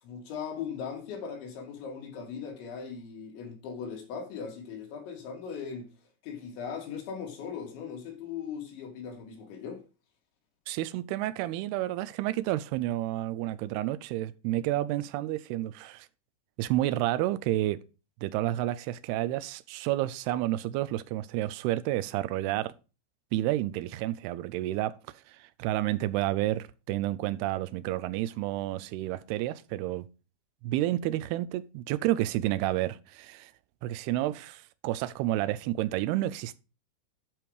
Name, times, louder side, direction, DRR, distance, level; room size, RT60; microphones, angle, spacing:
voice 1, 0.0-5.9 6.2-9.8, left 6 dB, 85° left, 4.6 m, -39 dB
voice 2, 10.7-16.1 16.6-17.8 18.2-22.7 23.3-25.0 25.3-30.1 30.6-33.5 33.8-36.6, right 15 dB, 80° right, 2.4 m, -30 dB
11.0 x 5.2 x 4.8 m
omnidirectional pair, 5.1 m